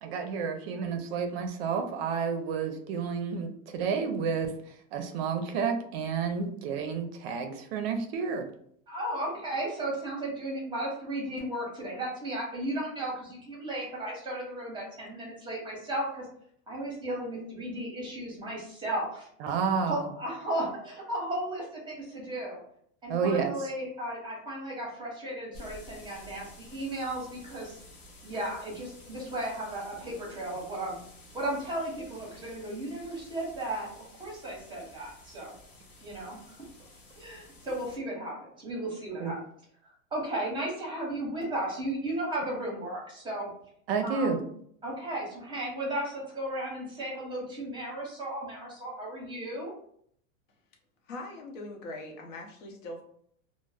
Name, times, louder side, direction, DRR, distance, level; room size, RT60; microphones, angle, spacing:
voice 1, 0.0-4.5 4.9-8.5 19.4-20.1 23.1-23.5 39.2-39.3 43.9-44.4, right 6 dB, 50° right, 6 dB, 0.4 m, -30 dB
voice 2, 8.9-16.3 16.7-19.3 19.8-22.6 23.0-27.8 28.2-31.0 31.3-35.5 36.0-36.6 37.1-39.4 40.1-43.5 44.0-44.5 44.8-49.7, right 1 dB, 10° right, -3 dB, 0.7 m, -35 dB
sound 1, 25.5-38.0, left 2 dB, 30° left, 0.5 m, -52 dB
voice 3, 51.0-53.0, left 2 dB, 70° left, 1 dB, 0.8 m, -41 dB
2.0 x 2.0 x 3.3 m, 0.65 s
supercardioid pair, 145°, 40 cm